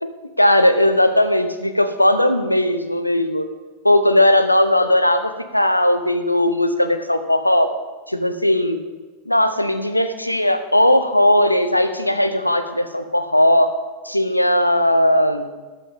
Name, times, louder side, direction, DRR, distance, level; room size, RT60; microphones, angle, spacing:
voice 1, 0.4-3.5 3.8-7.7 8.1-8.8 9.3-13.7 14.0-15.5, left 1 dB, 85° left, 10 dB, 0.9 m, -17 dB
13.0 x 11.5 x 3.7 m, 1.3 s
figure-of-eight pair, 90°, 0 cm